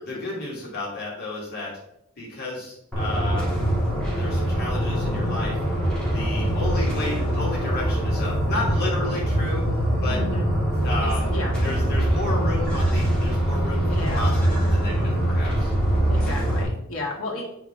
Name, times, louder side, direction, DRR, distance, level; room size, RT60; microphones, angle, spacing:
voice 1, 0.0-1.7 2.2-3.5 4.1-5.6 6.1-9.7 10.0-10.2 10.8-11.3 11.6-15.7, left 2 dB, 45° left, -5 dB, 2.9 m, -32 dB
sound 1, 2.9-16.6, right 1 dB, 5° left, 2.2 m, -23 dB
voice 2, 10.1-10.5 11.3-11.5 13.8-14.4 16.1-17.4, left 2 dB, 70° left, -2 dB, 2.2 m, -32 dB
8.2 x 5.5 x 3.6 m, 0.78 s
head